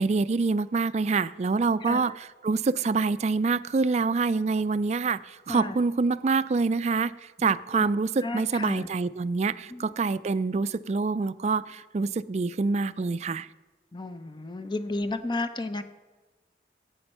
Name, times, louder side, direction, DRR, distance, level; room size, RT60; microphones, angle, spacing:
voice 1, 0.0-13.5, right 4 dB, 40° right, 16 dB, 0.3 m, -26 dB
voice 2, 7.4-7.9 8.2-8.9 9.7-9.9 13.9-15.8, left 2 dB, 25° left, 10 dB, 0.6 m, -33 dB
14.5 x 8.8 x 5.5 m, 1.2 s
head